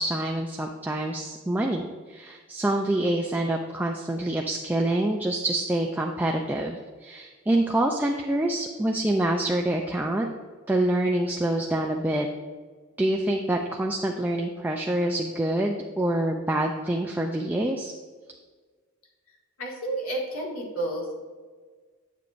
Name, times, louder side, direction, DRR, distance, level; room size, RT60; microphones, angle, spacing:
voice 1, 0.0-10.3 10.7-12.3 13.0-17.9, right 1 dB, 10° right, 1 dB, 0.3 m, -26 dB
voice 2, 19.6-21.2, right 1 dB, 85° left, -2 dB, 1.7 m, -31 dB
9.3 x 6.8 x 2.5 m, 1.5 s
head